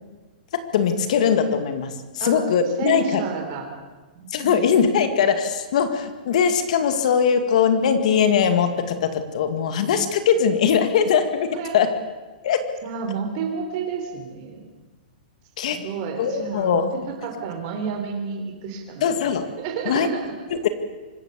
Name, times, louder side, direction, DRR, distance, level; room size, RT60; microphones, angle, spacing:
voice 1, 0.7-3.2 4.3-12.0 12.4-12.6 15.6-15.8 16.2-16.9 19.0-19.5 19.9-20.1 20.5-20.7, left 7 dB, 45° left, 9 dB, 2.2 m, -21 dB
voice 2, 2.8-3.7 4.1-4.5 11.5-11.8 12.8-14.7 15.7-19.1 19.6-20.4, right 6 dB, 30° right, 3 dB, 3.8 m, -30 dB
25.5 x 13.5 x 8.3 m, 1.3 s
hypercardioid pair, 175°, 5 cm